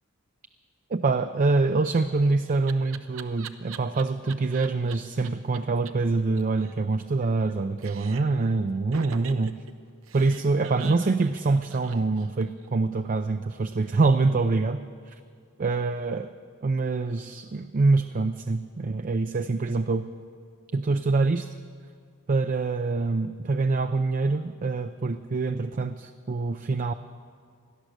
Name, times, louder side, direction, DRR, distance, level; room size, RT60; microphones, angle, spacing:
voice 1, 0.9-9.6 10.1-15.1 15.6-16.3 16.6-20.1 20.7-21.5 22.3-26.9, right 3 dB, 40° right, 9 dB, 0.4 m, -25 dB
Laughter, 1.8-4.9 5.2-5.3 5.5-5.6 5.9-6.0 6.2-7.5 7.8-8.4 8.9-12.7, right 7 dB, 80° right, 0.8 m, -43 dB
17.5 x 12.0 x 6.6 m, 2.2 s
head